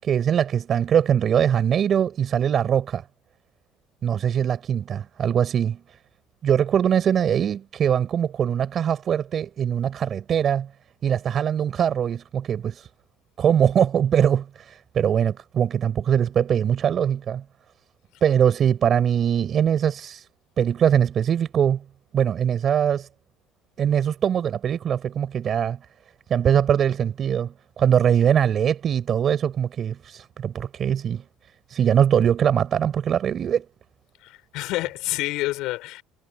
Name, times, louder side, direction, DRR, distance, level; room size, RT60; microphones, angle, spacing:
voice 1, 0.0-3.1 4.0-5.8 6.4-10.7 11.0-12.9 13.4-17.4 18.2-20.3 20.6-21.8 22.1-23.1 23.8-25.8 26.3-31.2 31.7-33.6, right 8 dB, 35° right, 5.8 m, -22 dB
voice 2, 34.2-36.0, left 19 dB, 70° left, 4.3 m, -28 dB
cardioid pair, 140°, 0 cm